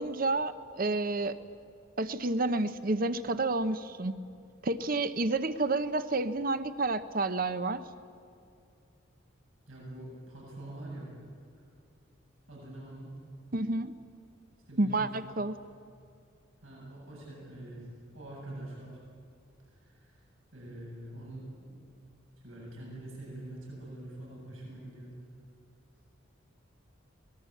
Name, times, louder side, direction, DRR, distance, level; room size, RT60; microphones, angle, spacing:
voice 1, 0.0-1.4 2.0-4.2 4.6-7.8 13.5-13.9 14.8-15.6, right 2 dB, 45° right, 12 dB, 0.8 m, -30 dB
voice 2, 9.7-11.1 12.5-13.1 14.7-15.1 16.6-17.9 18.1-19.0 19.8-20.2 20.5-21.8 22.4-25.2, right 1 dB, 90° right, -4 dB, 7.7 m, -44 dB
24.0 x 19.0 x 8.5 m, 2.4 s
head